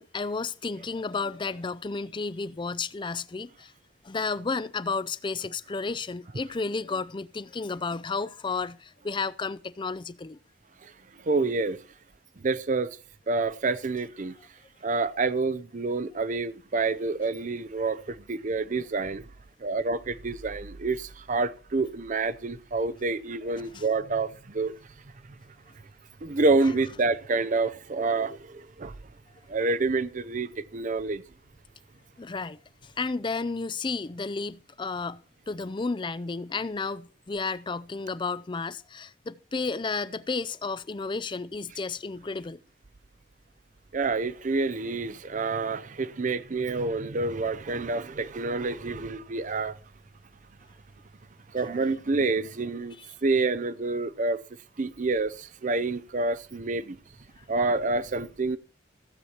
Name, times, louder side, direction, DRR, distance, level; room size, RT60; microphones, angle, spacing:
voice 1, 0.0-3.7 4.0-10.4 23.6-23.8 32.2-32.6 33.0-42.6, left 4 dB, 25° left, 0.4 m, -32 dB
voice 2, 11.2-11.8 12.4-12.9 13.3-14.3 14.8-19.2 19.6-24.7 26.2-28.9 29.5-31.2 43.9-49.8 51.5-53.0 53.2-54.4 54.8-57.0 57.5-58.6, right 3 dB, 40° right, 0.6 m, -28 dB
16.0 x 8.1 x 4.4 m
head